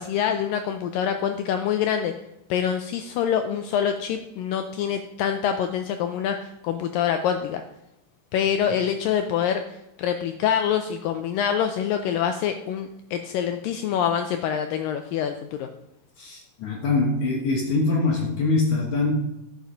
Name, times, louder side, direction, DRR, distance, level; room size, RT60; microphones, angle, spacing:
voice 1, 0.0-2.1 2.5-7.6 8.3-9.6 10.0-15.7, left 8 dB, 80° left, 7 dB, 2.0 m, -25 dB
voice 2, 16.2-19.1, left 3 dB, 60° left, 0 dB, 2.1 m, -23 dB
11.5 x 7.0 x 5.1 m, 0.88 s
omnidirectional pair, 4.4 m